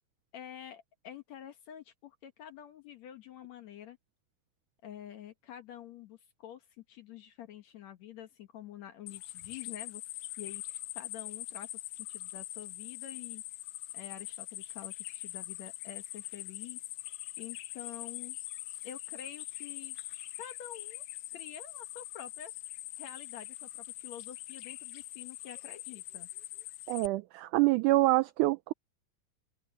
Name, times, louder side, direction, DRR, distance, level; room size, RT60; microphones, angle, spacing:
voice 1, 0.3-4.0 4.8-10.0 10.4-13.4 13.9-18.4 18.8-20.0 20.3-21.0 21.3-22.5 23.0-26.3, left 10 dB, 65° left, 2.0 m, -48 dB
sound 1, 9.1-27.1, left 15 dB, 85° left, 1.5 m, -43 dB
voice 2, 26.9-28.7, right 18 dB, 85° right, 1.8 m, -26 dB
open air
omnidirectional pair, 4.0 m